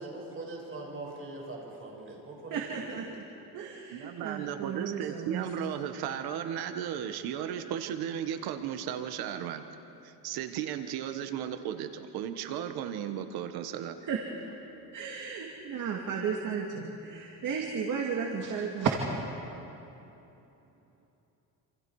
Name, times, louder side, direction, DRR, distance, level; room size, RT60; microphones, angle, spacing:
voice 1, 0.0-3.0, right 2 dB, 35° right, -1 dB, 6.5 m, -42 dB
voice 2, 2.5-3.3 3.5-5.5 14.0-14.2 14.9-18.9, right 6 dB, 60° right, 0 dB, 2.3 m, -34 dB
voice 3, 3.9-9.6 10.0-14.0, right 9 dB, 90° right, 8 dB, 1.4 m, -35 dB
28.0 x 27.5 x 4.8 m, 3.0 s
cardioid pair, 125°, 36 cm